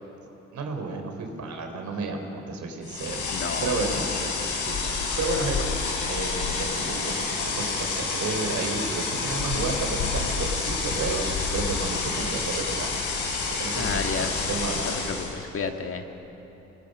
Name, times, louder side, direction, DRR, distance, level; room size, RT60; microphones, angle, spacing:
voice 1, 0.5-2.2 2.5-4.3 4.6-5.7 6.1-7.1 7.4-11.2 11.5-13.1 13.6-14.9, right 3 dB, 70° right, 4 dB, 3.6 m, -32 dB
sound 1, 2.8-15.4, left 4 dB, 80° left, 4.7 m, -29 dB
voice 2, 3.3-3.7 13.7-14.3 14.8-16.0, left 5 dB, 45° left, 5 dB, 1.7 m, -31 dB
26.0 x 20.5 x 6.4 m, 3.0 s
cardioid pair, 90°, 30 cm